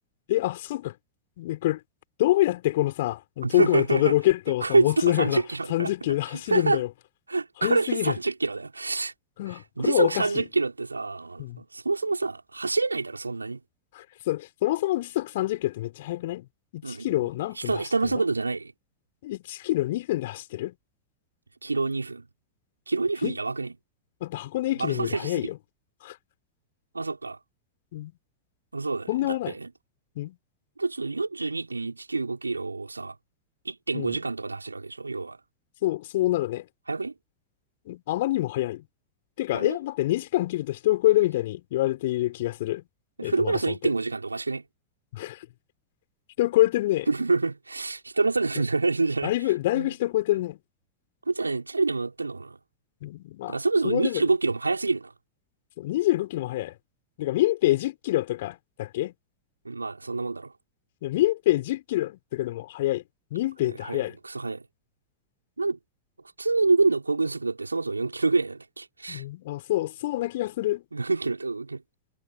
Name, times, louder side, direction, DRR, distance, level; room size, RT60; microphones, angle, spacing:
voice 1, 0.3-0.9 1.4-1.8 2.2-5.4 5.7-6.9 7.6-8.1 9.4-10.2 11.4-11.6 13.9-16.4 16.7-17.7 18.0-18.2 19.2-20.7 23.2-23.4 24.2-25.5 26.0-26.2 27.9-28.1 29.1-29.5 30.2-30.4 33.9-34.2 35.8-36.7 37.9-38.8 39.4-42.8 43.2-43.8 45.1-45.5 46.4-47.1 49.2-50.6 53.0-53.6 53.8-54.2 55.8-56.7 57.2-59.1 61.0-63.0 63.3-64.2 69.1-70.8, left 16 dB, 55° left, 6.2 m, -26 dB
voice 2, 3.4-4.2 4.6-5.9 6.5-6.8 7.3-9.1 9.8-13.6 16.8-17.3 17.6-18.7 21.6-22.3 22.9-23.7 24.8-25.5 26.9-27.4 28.7-29.7 30.8-33.2 33.6-35.4 36.9-37.1 39.5-39.8 43.2-44.6 47.1-49.3 49.7-49.9 51.3-52.6 53.5-55.1 59.6-60.5 63.8-64.6 65.6-65.8 66.4-69.2 70.9-71.8, right 3 dB, 80° right, 5.9 m, -27 dB
figure-of-eight pair, 90°, 0 cm